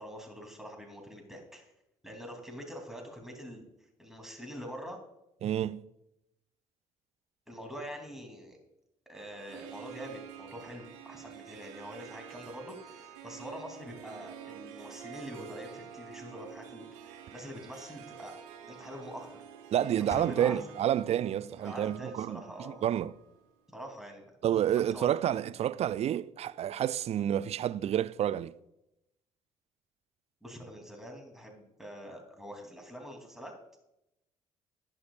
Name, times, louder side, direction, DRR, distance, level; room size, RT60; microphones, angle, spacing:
voice 1, 0.0-1.7 2.0-3.7 4.0-5.0 7.5-8.6 9.1-18.3 18.7-19.3 20.0-20.6 21.6-22.8 23.7-24.3 24.9-25.1 30.4-33.5, equal, 5° right, 3.1 m, -44 dB
voice 2, 5.4-5.8 19.7-22.4 22.8-23.1 24.4-28.5, right 11 dB, 40° right, 0.4 m, -29 dB
Harp, 9.1-23.6, right 9 dB, 70° right, 1.2 m, -49 dB
sound 1, 20.1-21.9, left 2 dB, 15° left, 1.2 m, -47 dB
19.0 x 6.4 x 2.5 m
figure-of-eight pair, 50°, 16 cm